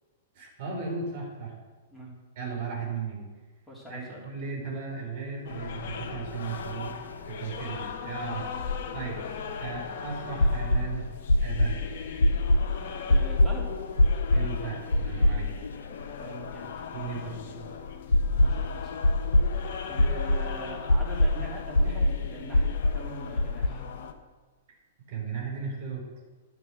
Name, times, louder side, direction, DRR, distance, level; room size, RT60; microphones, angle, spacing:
voice 1, 0.3-1.6 2.4-3.3 3.9-6.9 7.2-8.5 8.9-9.2 9.6-11.1 11.4-11.8 14.3-15.5 16.9-17.3 25.1-26.1, right 5 dB, 50° right, -2 dB, 4.3 m, -36 dB
voice 2, 3.7-4.2 13.1-13.8 16.2-17.6 18.5-19.0 19.9-23.9, equal, ahead, -6 dB, 3.3 m, -42 dB
sound 1, 5.4-24.1, left 6 dB, 55° left, 1.2 m, -39 dB
sound 2, 6.6-6.7 6.9-7.0 8.6-9.8 10.4-10.9 11.3-11.8 12.2-12.7 13.1-13.5 14.0-14.5 14.9-15.7 16.0-16.1 18.1-18.7 19.0-19.5 20.0-20.5 20.9-21.4 21.7-22.2 22.5-23.0 23.4-23.7, left 1 dB, 80° left, 0.7 m, -22 dB
11.5 x 6.8 x 6.5 m, 1.4 s
figure-of-eight pair, 110°, 0 cm